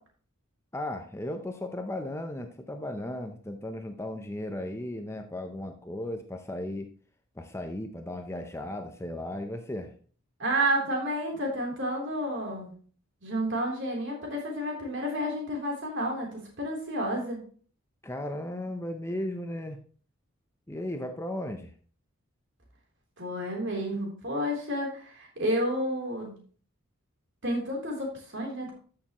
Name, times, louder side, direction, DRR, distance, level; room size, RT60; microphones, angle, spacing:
voice 1, 0.7-6.9 7.4-9.9 18.0-19.8 20.7-21.7, left 1 dB, 10° left, 6 dB, 0.6 m, -36 dB
voice 2, 10.4-12.7 13.2-17.4 23.2-26.3 27.4-28.7, right 1 dB, 60° right, 0 dB, 3.5 m, -30 dB
13.0 x 6.7 x 3.0 m, 0.43 s
head